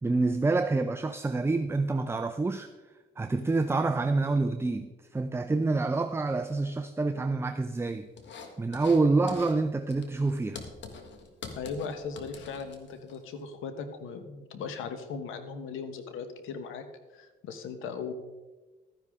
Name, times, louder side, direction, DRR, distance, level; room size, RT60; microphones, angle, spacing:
voice 1, 0.0-2.7 3.2-8.1 8.6-10.6, right 3 dB, 10° right, 0.5 m, -27 dB
sound 1, 8.2-9.0 9.3-9.6 9.9-13.2, left 5 dB, 65° left, 1.7 m, -45 dB
voice 2, 11.6-16.9 17.1-18.1, left 5 dB, 90° left, 1.3 m, -38 dB
13.0 x 10.0 x 3.6 m
cardioid pair, 90°, 20 cm